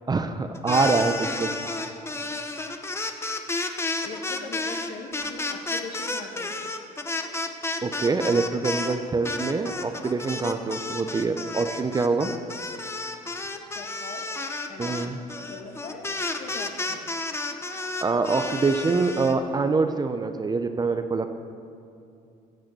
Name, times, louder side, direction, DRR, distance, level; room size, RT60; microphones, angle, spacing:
voice 1, 0.1-1.5 7.8-12.3 14.8-15.2 18.0-21.4, right 4 dB, 25° right, 8 dB, 0.7 m, -25 dB
sound 1, 0.5-9.0 9.2-19.3, left 2 dB, 15° left, 0.8 m, -31 dB
voice 2, 4.0-6.7 13.8-14.3 14.7-15.1 15.4-16.1 16.4-17.0, left 4 dB, 55° left, 3 dB, 1.7 m, -41 dB
15.0 x 6.5 x 8.0 m, 2.6 s
cardioid pair, 110°, 17 cm